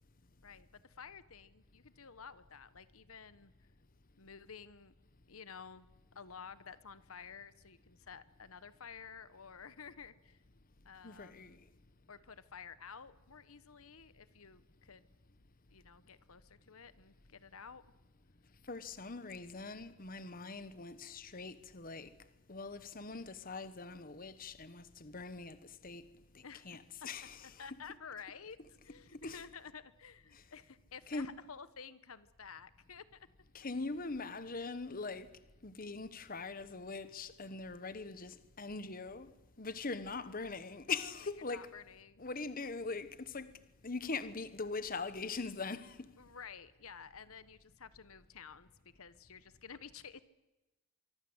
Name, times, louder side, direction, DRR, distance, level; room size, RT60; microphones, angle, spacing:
voice 1, 0.4-3.5 4.2-4.9 5.3-5.9 6.1-10.4 10.8-11.6 12.1-15.1 15.7-17.8 26.4-27.1 27.4-28.6 28.8-33.3 41.5-42.3 46.2-48.7 48.9-50.2, left 6 dB, 75° left, 1.2 m, -52 dB
voice 2, 11.0-11.6 18.7-22.1 22.5-26.1 26.3-27.9 29.2-29.5 30.3-30.4 31.1-31.4 33.5-35.3 35.6-39.3 39.6-41.8 42.2-43.5 43.8-46.1, left 4 dB, 40° left, 1.1 m, -42 dB
24.5 x 24.5 x 8.1 m
head